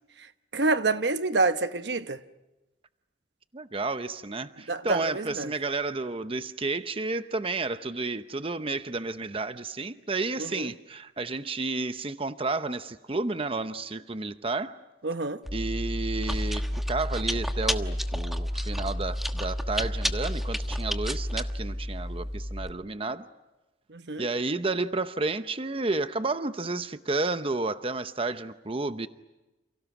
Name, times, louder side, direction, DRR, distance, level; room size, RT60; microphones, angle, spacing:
voice 1, 0.5-2.2 4.7-5.5 10.4-10.7 15.0-15.4 23.9-24.3, right 3 dB, 65° right, 1.0 m, -27 dB
voice 2, 3.5-14.8 15.5-23.2 24.2-29.1, right 3 dB, 30° right, 0.8 m, -31 dB
Chewing mastication, 15.5-22.7, equal, ahead, 1.3 m, -30 dB
30.0 x 29.0 x 6.1 m
head